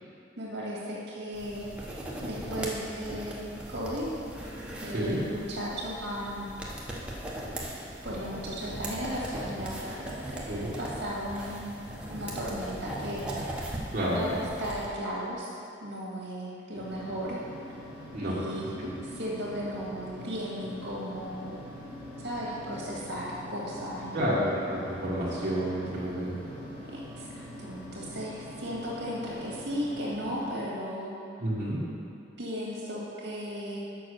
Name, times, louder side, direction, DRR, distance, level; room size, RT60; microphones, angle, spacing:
voice 1, 0.4-1.7 2.2-3.4 3.7-4.2 4.8-6.5 8.0-11.8 12.1-13.6 14.1-15.5 15.8-17.4 18.3-21.6 22.2-24.6 26.9-31.2 32.4-33.8, equal, 65° right, -5 dB, 1.9 m, -36 dB
sound 1, 1.3-14.9, right 1 dB, 5° right, 1.0 m, -39 dB
voice 2, 13.9-14.3 18.1-18.3 18.8-18.9 24.1-26.3 31.4-31.8, equal, 40° right, -10 dB, 1.5 m, -29 dB
sound 2, 16.7-30.5, equal, 65° left, 1.6 m, -44 dB
6.9 x 5.5 x 6.5 m, 2.5 s
head